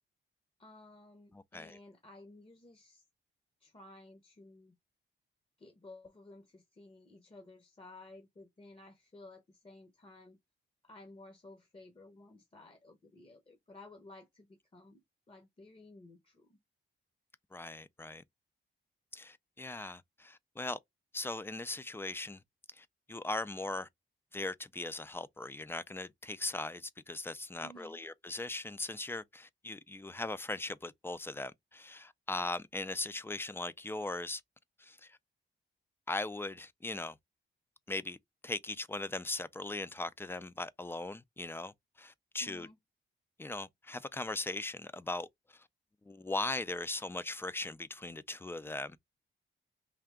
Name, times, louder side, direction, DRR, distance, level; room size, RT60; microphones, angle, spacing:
voice 1, 0.6-3.0 3.6-4.7 5.6-10.4 10.8-16.6 27.6-28.0 42.4-42.8, left 2 dB, 25° left, 0.8 m, -55 dB
voice 2, 1.3-1.8 17.5-18.2 19.1-20.8 21.1-22.4 22.7-23.9 24.3-34.4 34.8-35.2 36.1-37.2 37.9-38.2 38.4-42.7 43.4-45.7 46.1-49.0, left 2 dB, 10° left, 0.3 m, -39 dB
3.4 x 2.8 x 3.5 m
cardioid pair, 110°, 20 cm